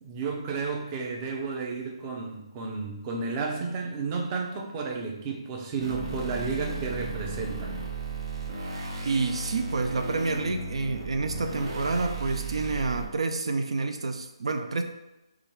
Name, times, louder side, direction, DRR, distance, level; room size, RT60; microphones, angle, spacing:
voice 1, 0.0-7.8, right 4 dB, 25° right, 1 dB, 0.5 m, -32 dB
sound 1, 5.8-13.1, right 3 dB, 55° right, 1.0 m, -35 dB
voice 2, 9.0-14.8, right 3 dB, 75° right, 6 dB, 0.4 m, -28 dB
4.9 x 2.3 x 3.0 m, 0.96 s
hypercardioid pair, 155°, 3 cm